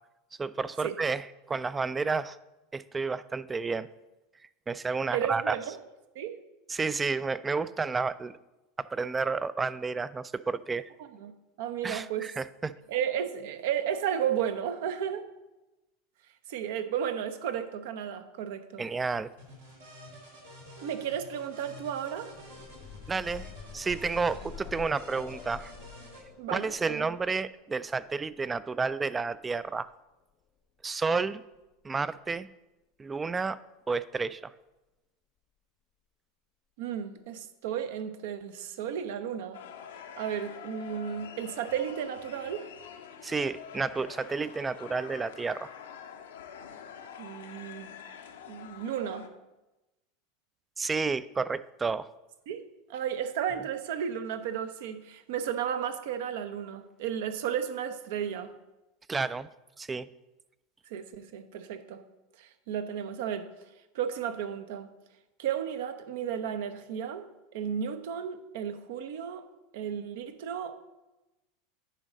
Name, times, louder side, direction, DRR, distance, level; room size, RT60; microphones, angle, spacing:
voice 1, 0.4-2.4 2.7-3.9 4.7-5.6 6.7-8.4 8.8-10.9 11.8-12.7 18.8-19.3 23.1-23.5 23.7-25.7 26.5-29.9 30.8-31.4 31.8-32.5 33.0-33.6 33.9-34.5 43.2-45.7 50.8-52.1 59.1-59.5 59.8-60.1, right 4 dB, 20° right, 16 dB, 0.3 m, -31 dB
voice 2, 5.1-5.8 6.1-6.3 11.2-12.3 12.9-15.3 16.5-18.9 20.8-22.3 26.4-27.1 36.8-39.6 40.2-42.7 47.2-47.9 48.5-49.3 52.5-58.5 60.9-62.0 62.4-63.5 63.9-64.9 65.4-67.3 67.5-69.5 69.7-70.8, right 9 dB, 65° right, 9 dB, 0.7 m, -33 dB
sound 1, 19.4-26.2, left 1 dB, 85° right, 2.4 m, -49 dB
sound 2, 22.1-29.9 31.1-31.2 31.5-31.6, left 8 dB, 40° left, 0.5 m, -48 dB
sound 3, 39.5-49.3, left 8 dB, 75° left, 0.7 m, -46 dB
10.0 x 4.0 x 5.0 m, 1.0 s
hypercardioid pair, 85°, 0 cm